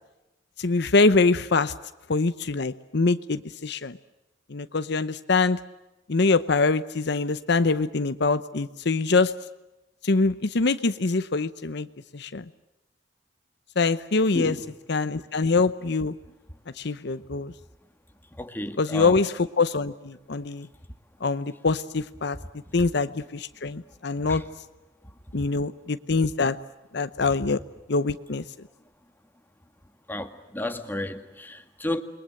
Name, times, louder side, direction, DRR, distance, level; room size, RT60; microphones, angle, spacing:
voice 1, 0.6-1.7 2.1-4.0 4.5-5.6 6.1-9.3 10.0-11.9 12.1-12.4 13.8-14.6 14.9-16.2 16.8-17.5 18.8-20.7 21.2-22.4 22.7-24.4 25.3-26.6 26.9-27.6 27.9-28.4, left 3 dB, 60° left, 12 dB, 0.8 m, -24 dB
voice 2, 14.2-14.6 18.4-19.2 24.3-24.4 30.1-32.0, left 1 dB, 10° left, 6 dB, 1.9 m, -32 dB
28.5 x 22.0 x 7.8 m, 1.0 s
head